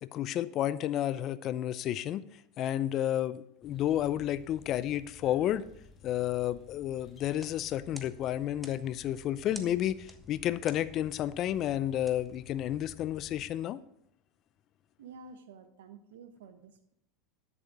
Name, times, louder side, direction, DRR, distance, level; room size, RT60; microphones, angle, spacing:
voice 1, 0.0-2.2 2.6-5.6 6.0-13.8, left 12 dB, 45° left, 16 dB, 0.5 m, -31 dB
sound 1, 3.6-13.5, left 4 dB, 30° left, 2.0 m, -55 dB
sound 2, 7.3-13.1, equal, ahead, 1.2 m, -54 dB
voice 2, 15.0-16.9, right 5 dB, 80° right, 9 dB, 1.3 m, -50 dB
11.0 x 7.0 x 4.9 m, 0.76 s
hypercardioid pair, 95°, 0 cm